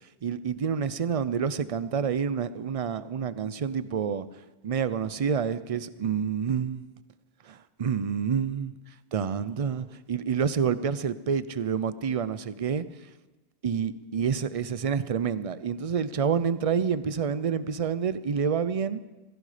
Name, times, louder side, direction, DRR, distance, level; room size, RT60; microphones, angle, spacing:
voice 1, 0.2-4.3 4.6-6.9 7.5-8.7 9.1-12.8 13.6-19.0, right 7 dB, 40° right, 15 dB, 0.6 m, -28 dB
17.0 x 15.0 x 5.0 m, 1.2 s
omnidirectional pair, 1.1 m